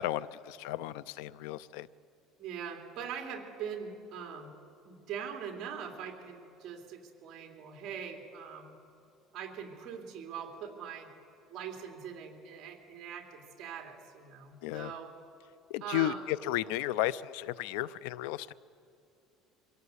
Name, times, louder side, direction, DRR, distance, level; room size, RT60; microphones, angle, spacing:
voice 1, 0.0-1.9 14.6-14.9 15.7-18.5, left 14 dB, 90° left, 18 dB, 0.5 m, -33 dB
voice 2, 2.4-4.5 4.8-8.8 9.3-11.1 11.5-15.1 15.8-16.3, right 7 dB, 40° right, 3 dB, 3.0 m, -42 dB
24.0 x 16.5 x 8.0 m, 2.6 s
cardioid pair, 170°, 0 cm